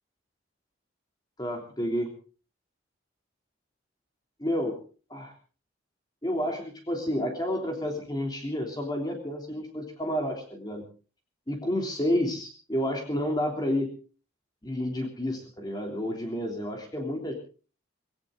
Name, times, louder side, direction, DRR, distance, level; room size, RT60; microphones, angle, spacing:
voice 1, 1.4-2.1 4.4-4.8 5.1-5.3 6.2-10.8 11.5-13.9 14.6-17.3, left 1 dB, 20° left, 2 dB, 3.2 m, -30 dB
19.0 x 18.5 x 3.9 m, 0.38 s
head